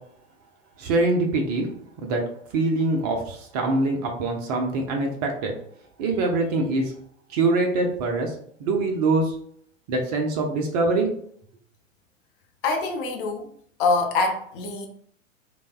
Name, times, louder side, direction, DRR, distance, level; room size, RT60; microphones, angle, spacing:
voice 1, 0.8-1.7 2.0-2.2 2.5-5.6 6.0-6.9 7.3-8.3 8.6-9.3 9.9-11.1, right 2 dB, 30° right, 0.4 m, -24 dB
voice 2, 12.6-13.5 13.8-14.9, left 3 dB, 45° left, 0.6 m, -24 dB
3.2 x 2.0 x 2.4 m
figure-of-eight pair, 95°, 39 cm